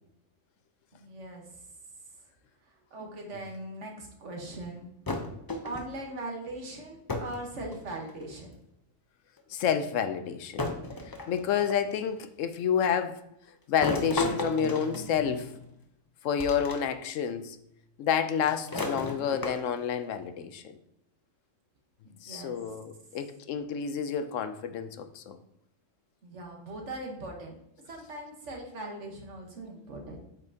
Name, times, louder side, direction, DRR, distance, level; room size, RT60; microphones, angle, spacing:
voice 1, 0.9-1.5 2.9-4.9 5.4-8.6 22.0-22.6 26.2-27.5 27.9-30.3, right 2 dB, 65° right, 1 dB, 1.6 m, -40 dB
sound 1, 5.1-6.0 7.1-7.4 7.7-8.3 9.4-9.5 10.6-11.9 13.8-15.7 16.4-16.8 17.2-17.3 18.4-19.9, left 2 dB, 25° left, 0.5 m, -34 dB
voice 2, 9.5-10.7 11.0-13.2 13.7-15.5 16.2-17.6 18.0-20.8 22.2-25.4, left 8 dB, 75° left, 9 dB, 0.9 m, -29 dB
8.2 x 5.3 x 2.8 m, 0.78 s
omnidirectional pair, 1.4 m